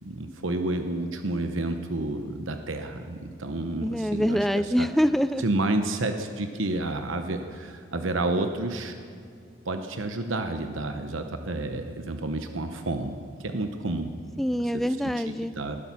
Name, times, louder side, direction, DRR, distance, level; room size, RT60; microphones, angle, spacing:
voice 1, 0.0-4.5 4.8-4.9 5.4-9.0 9.6-14.1 15.0-15.8, right 2 dB, 80° right, 7 dB, 1.0 m, -30 dB
voice 2, 3.8-5.4 14.4-15.5, equal, ahead, 12 dB, 0.3 m, -25 dB
20.5 x 11.5 x 6.1 m, 2.4 s
head